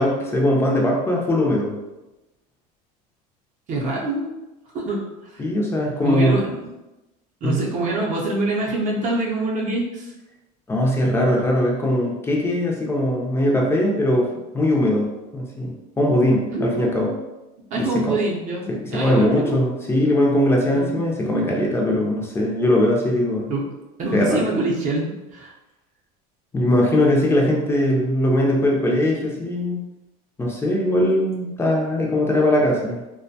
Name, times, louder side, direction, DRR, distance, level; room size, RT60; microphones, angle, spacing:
voice 1, 0.0-1.8 5.4-6.4 7.4-7.6 10.7-14.3 14.5-15.1 15.3-17.1 17.8-18.2 18.7-23.5 24.1-24.5 26.5-29.8 30.4-33.0, left 1 dB, 15° left, -2 dB, 0.5 m, -20 dB
voice 2, 3.7-4.3 4.7-5.1 5.3-5.4 6.0-6.7 7.4-10.1 16.5-17.2 17.7-19.6 20.7-20.9 23.5-23.7 24.0-25.5, right 2 dB, 40° right, -2 dB, 0.7 m, -25 dB
2.5 x 2.2 x 2.7 m, 1.0 s
supercardioid pair, 130°, 19 cm